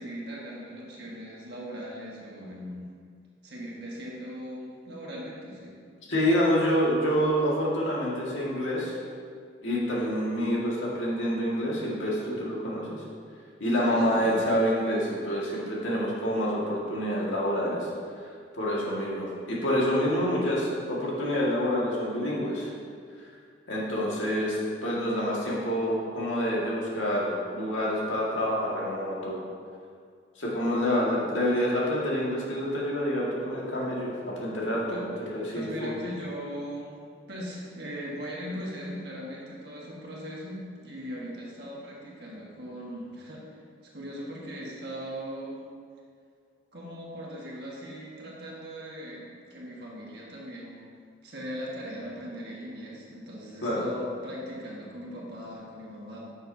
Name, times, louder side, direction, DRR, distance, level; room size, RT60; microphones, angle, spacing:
voice 1, 0.0-2.9 3.4-5.7 13.8-14.4 34.9-35.1 35.5-37.0 37.3-43.6 43.9-45.6 46.7-50.9 51.2-56.2, equal, 55° right, -4 dB, 1.5 m, -39 dB
voice 2, 6.1-8.9 9.6-13.0 13.6-17.9 18.5-22.7 23.7-29.4 30.4-35.9 53.6-53.8, equal, 85° left, -5 dB, 1.9 m, -27 dB
9.8 x 6.4 x 2.7 m, 2.1 s
head